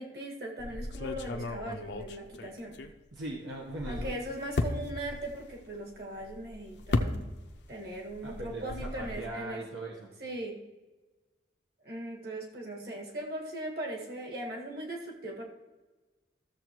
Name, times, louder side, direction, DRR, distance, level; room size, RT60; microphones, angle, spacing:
voice 1, 0.0-2.8 3.9-7.2 7.7-9.6 10.2-10.6 11.8-15.4, right 1 dB, 55° right, -1 dB, 1.8 m, -39 dB
sound 1, 0.6-3.3 3.6-7.7 8.0-9.3, left 2 dB, 70° left, 0.6 m, -35 dB
voice 2, 3.1-4.1 8.2-10.1, right 1 dB, 85° right, -2 dB, 1.1 m, -39 dB
14.5 x 7.0 x 3.0 m, 1.2 s
head